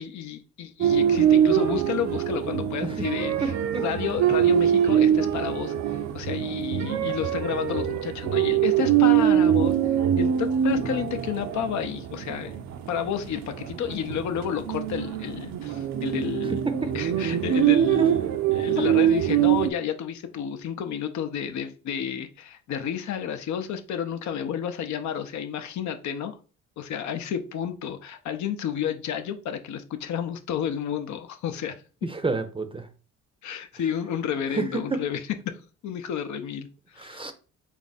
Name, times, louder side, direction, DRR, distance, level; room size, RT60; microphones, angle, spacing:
voice 1, 0.0-3.6 3.8-12.6 12.9-26.4 26.8-31.8 33.4-35.4 35.8-37.2, left 8 dB, 70° left, 0.6 m, -31 dB
sound 1, 0.8-19.7, right 10 dB, 65° right, 0.5 m, -23 dB
voice 2, 3.4-3.8 16.5-16.8 18.0-18.1 32.2-32.8 34.9-35.0 37.1-37.3, right 4 dB, 20° right, 0.5 m, -28 dB
3.6 x 2.6 x 4.0 m
cardioid pair, 90°, 30 cm